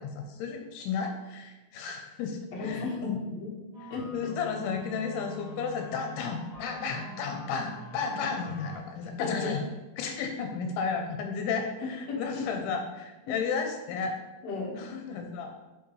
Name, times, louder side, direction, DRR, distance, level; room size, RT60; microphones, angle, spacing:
voice 1, 0.0-2.9 4.1-9.6 10.0-14.1 14.8-15.6, left 5 dB, 85° left, 4 dB, 2.7 m, -33 dB
voice 2, 2.5-3.6 3.9-4.3 9.2-9.5 11.8-12.4 13.3-13.4 14.4-14.8, left 4 dB, 55° left, -3 dB, 2.3 m, -34 dB
sound 1, 3.7-8.8, equal, 25° right, 2.2 m, -44 dB
9.4 x 5.3 x 3.2 m, 1.1 s
omnidirectional pair, 4.5 m